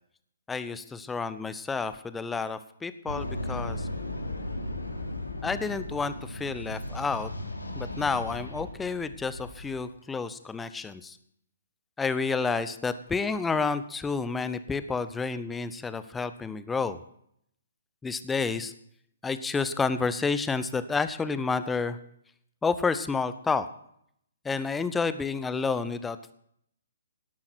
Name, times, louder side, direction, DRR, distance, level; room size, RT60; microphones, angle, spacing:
voice 1, 0.5-3.9 5.4-7.3 7.7-11.2 12.0-17.0 18.0-18.7 19.2-22.0 22.6-23.7 24.4-26.3, left 4 dB, 10° left, 13 dB, 0.8 m, -30 dB
sound 1, 3.1-9.8, left 1 dB, 85° left, 3.0 m, -36 dB
18.0 x 11.5 x 4.5 m, 0.69 s
figure-of-eight pair, 125°, 0 cm